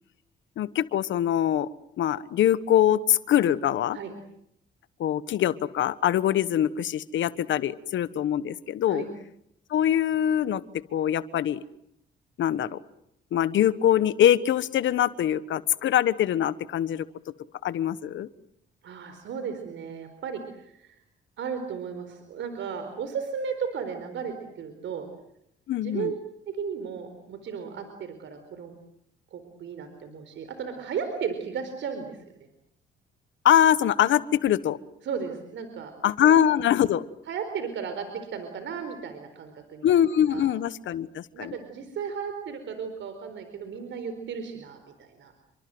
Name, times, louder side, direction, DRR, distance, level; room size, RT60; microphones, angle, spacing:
voice 1, 0.6-1.7 2.0-4.0 5.0-9.0 9.7-10.6 10.9-11.6 12.4-12.8 13.3-17.1 17.6-18.3 25.7-26.1 33.4-34.8 36.0-37.0 39.8-41.5, left 10 dB, 70° left, 16 dB, 1.2 m, -23 dB
voice 2, 18.8-21.0 21.4-25.1 25.8-26.1 26.5-28.7 29.3-32.2 35.0-35.9 36.2-36.4 37.3-40.0 40.3-40.5 41.3-45.3, right 6 dB, 70° right, 8 dB, 4.4 m, -35 dB
29.5 x 24.5 x 7.8 m, 0.75 s
cardioid pair, 90°, 20 cm